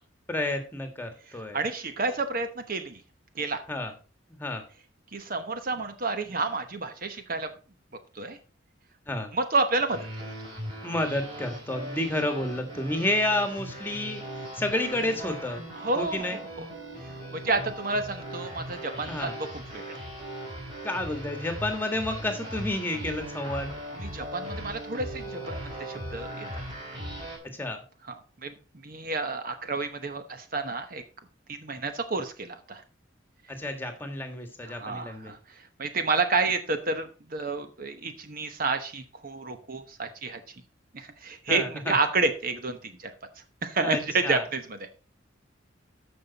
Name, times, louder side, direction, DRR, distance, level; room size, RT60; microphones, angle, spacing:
voice 1, 0.3-1.6 3.7-3.9 4.3-4.6 9.1-9.3 10.8-14.2 14.5-15.6 15.9-16.4 19.1-19.3 20.8-23.7 27.5-27.8 33.5-35.3 41.5-41.9 43.8-44.4, left 1 dB, 10° left, 5 dB, 1.6 m, -30 dB
voice 2, 1.5-3.0 3.3-3.6 5.1-7.5 8.1-8.4 9.3-10.3 15.8-16.4 17.0-19.5 19.7-20.1 24.0-26.6 28.1-28.5 28.8-31.0 31.5-32.8 34.6-40.5 40.9-43.1 43.6-44.9, right 3 dB, 50° right, 8 dB, 1.0 m, -30 dB
sound 1, 9.9-27.4, right 1 dB, 25° right, 5.8 m, -39 dB
14.0 x 5.5 x 4.0 m, 0.35 s
head